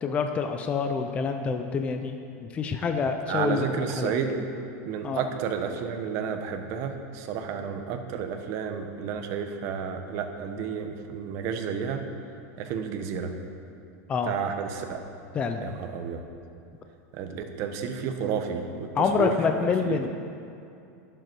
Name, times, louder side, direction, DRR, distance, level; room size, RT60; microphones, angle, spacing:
voice 1, 0.0-2.1 2.4-3.7 4.0-4.1 5.0-5.2 14.1-14.3 15.3-15.7 18.9-20.1, left 5 dB, 15° left, 5 dB, 0.5 m, -27 dB
voice 2, 3.3-4.5 4.9-12.1 12.6-13.3 14.2-15.0 15.6-16.2 17.1-18.9 19.2-19.4 19.6-20.0, right 7 dB, 35° right, 5 dB, 1.1 m, -31 dB
22.0 x 7.8 x 4.6 m, 2.5 s
supercardioid pair, 175°, 8 cm